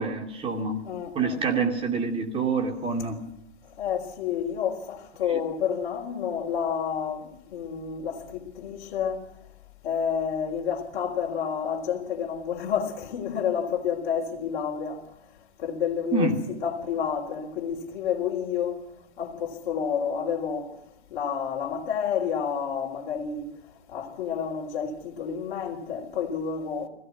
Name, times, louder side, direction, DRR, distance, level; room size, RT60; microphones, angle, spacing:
voice 1, 0.0-0.8 1.1-3.2 5.3-5.4 16.1-16.4, right 4 dB, 15° right, 2.8 m, -26 dB
voice 2, 0.8-1.4 3.8-9.3 9.8-15.0 15.6-18.8 19.2-20.8 21.1-23.5 23.9-26.9, left 7 dB, 45° left, 3.8 m, -29 dB
21.0 x 16.0 x 9.5 m
figure-of-eight pair, 125°, 34 cm